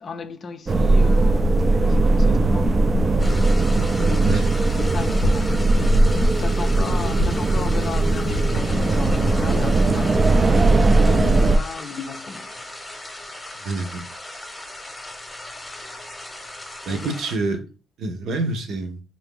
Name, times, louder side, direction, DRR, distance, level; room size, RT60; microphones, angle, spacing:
voice 1, 0.0-3.3 3.7-4.5 4.8-12.7 16.9-17.2, left 5 dB, 50° left, 0.5 m, -35 dB
sound 1, 0.7-11.6, right 2 dB, 35° right, 0.4 m, -18 dB
sound 2, 3.2-17.4, left 1 dB, 15° left, 0.9 m, -37 dB
sound 3, 4.2-9.4, left 2 dB, 85° left, 0.7 m, -31 dB
voice 2, 13.6-14.1 16.9-17.6 18.0-19.0, right 3 dB, 75° right, 0.8 m, -26 dB
3.8 x 2.6 x 3.6 m
cardioid pair, 90°, 0 cm